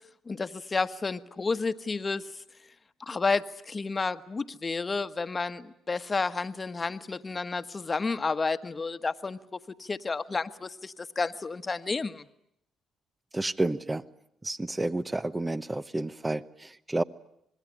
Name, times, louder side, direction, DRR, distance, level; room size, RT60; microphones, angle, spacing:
voice 1, 0.3-2.3 3.1-9.4 9.8-12.2, left 4 dB, 35° left, 11 dB, 1.3 m, -31 dB
voice 2, 13.3-14.0 14.4-17.0, right 2 dB, 20° right, 15 dB, 1.0 m, -30 dB
27.0 x 20.5 x 10.0 m, 0.77 s
supercardioid pair, 65°, 0 cm